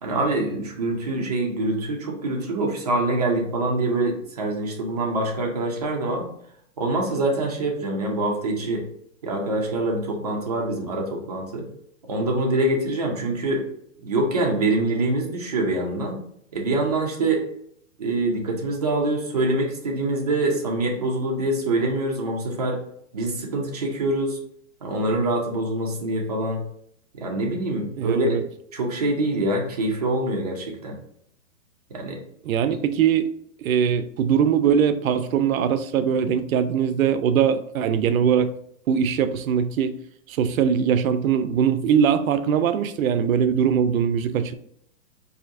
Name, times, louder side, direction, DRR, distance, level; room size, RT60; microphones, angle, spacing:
voice 1, 0.0-6.3 6.8-8.9 9.2-11.7 12.1-13.7 14.0-16.2 16.5-17.5 18.0-22.8 23.1-24.4 24.8-26.6 27.1-28.4 28.7-31.0 31.9-32.2, right 2 dB, 30° right, 0 dB, 0.5 m, -25 dB
voice 2, 28.0-28.4 32.4-33.3 33.6-38.5 38.9-39.9 40.3-44.5, right 8 dB, 90° right, 11 dB, 0.5 m, -21 dB
4.1 x 2.7 x 2.5 m, 0.69 s
hypercardioid pair, 175°, 40 cm